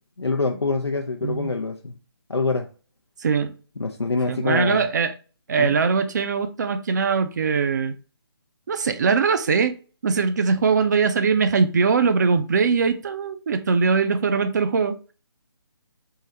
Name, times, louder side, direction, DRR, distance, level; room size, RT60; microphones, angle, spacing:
voice 1, 0.2-1.9 2.3-2.7 3.8-4.8 5.6-5.8, left 3 dB, 85° left, 0.5 m, -25 dB
voice 2, 1.2-1.5 3.2-3.5 4.3-5.1 5.5-7.9 8.7-15.0, right 5 dB, 45° right, 0.5 m, -21 dB
3.8 x 2.7 x 4.2 m
figure-of-eight pair, 150°, 13 cm